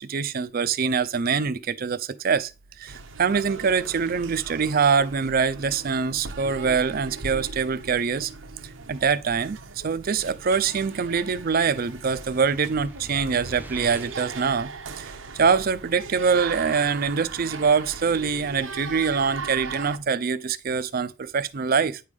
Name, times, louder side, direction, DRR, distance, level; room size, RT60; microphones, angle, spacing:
voice 1, 0.0-2.5 2.8-8.3 8.9-9.6 9.8-14.7 15.0-15.1 15.4-22.0, right 5 dB, 50° right, 0.5 m, -24 dB
sound 1, 2.9-20.0, right 4 dB, 85° right, 0.9 m, -39 dB
sound 2, 11.8-14.4, right 1 dB, 10° right, 0.7 m, -43 dB
9.2 x 3.4 x 5.3 m
head